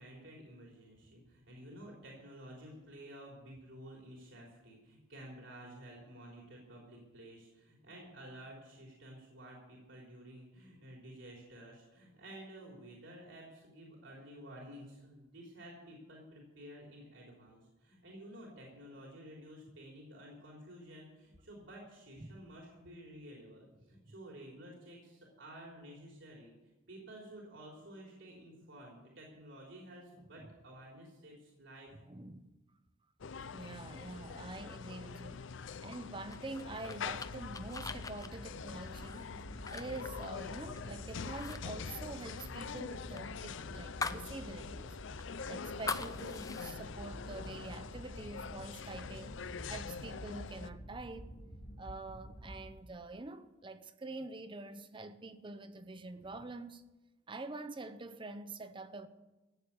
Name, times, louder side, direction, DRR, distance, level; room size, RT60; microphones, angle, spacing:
voice 1, 0.0-31.9 34.2-34.3, right 1 dB, 75° right, 3.5 m, -52 dB
voice 2, 32.1-32.5 33.5-35.5 35.8-39.3 39.7-45.0 45.5-51.4 51.8-56.8 57.3-59.1, right 2 dB, 25° right, 0.7 m, -46 dB
sound 1, 33.2-50.7, left 6 dB, 75° left, 0.5 m, -45 dB
sound 2, 36.3-40.9 41.3-41.6 41.9-44.3 44.7-44.8 45.2-46.7, left 4 dB, 20° left, 0.5 m, -43 dB
sound 3, 37.1-52.7, equal, 50° left, 1.9 m, -50 dB
15.0 x 8.1 x 8.4 m
head